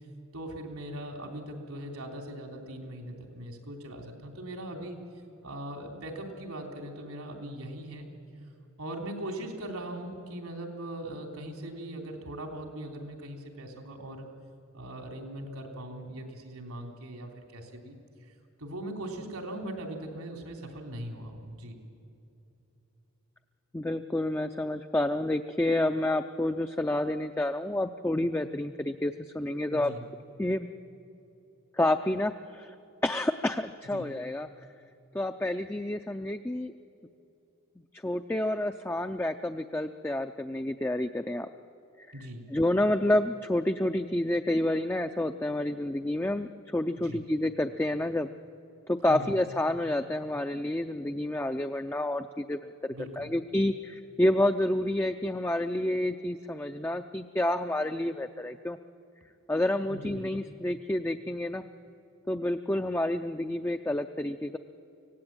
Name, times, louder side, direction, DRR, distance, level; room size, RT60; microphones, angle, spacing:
voice 1, 0.3-5.0 5.4-8.1 8.8-14.3 14.7-18.0 18.6-21.8 29.7-30.0 33.9-34.1 42.1-42.4 47.0-47.2 49.1-49.4 52.9-53.3 59.9-60.4, right 1 dB, 85° right, 2 dB, 3.3 m, -40 dB
voice 2, 23.7-29.9 30.4-30.7 31.7-32.8 33.0-34.5 35.1-36.7 37.9-41.5 42.0-42.1 42.5-48.3 48.9-58.8 59.5-61.7 62.3-64.6, left 1 dB, 10° left, 7 dB, 0.4 m, -29 dB
24.5 x 17.5 x 8.9 m, 2.8 s
head